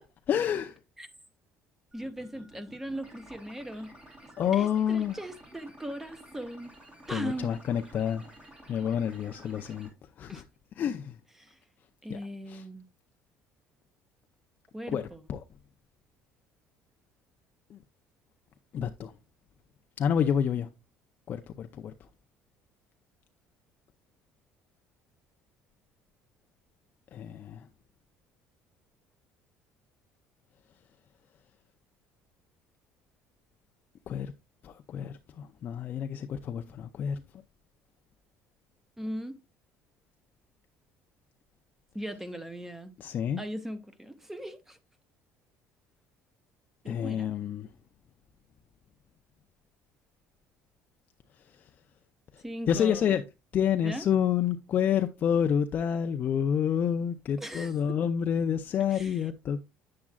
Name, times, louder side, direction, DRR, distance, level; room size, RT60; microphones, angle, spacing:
voice 1, 0.3-0.8 4.4-5.2 7.1-8.3 8.7-9.9 10.2-10.4 10.7-11.2 12.1-12.2 12.5-12.7 14.9-15.4 17.7-17.8 18.7-19.1 20.0-20.7 21.3-21.9 27.1-27.7 34.1-34.3 34.6-37.2 43.0-43.4 46.8-47.7 51.4-51.7 52.3-53.2 53.5-59.6, left 8 dB, 40° left, 0.5 m, -29 dB
voice 2, 1.9-3.9 4.2-6.7 7.1-7.5 10.3-10.4 11.4-11.6 12.0-12.9 14.7-15.2 39.0-39.4 41.9-42.9 43.4-44.8 46.8-47.3 52.4-53.2 53.8-54.1 57.4-58.0 58.9-59.2, right 1 dB, 5° right, 0.7 m, -39 dB
sound 1, 1.9-9.9, right 1 dB, 25° right, 2.6 m, -52 dB
8.6 x 7.0 x 2.3 m
cardioid pair, 140°, 5 cm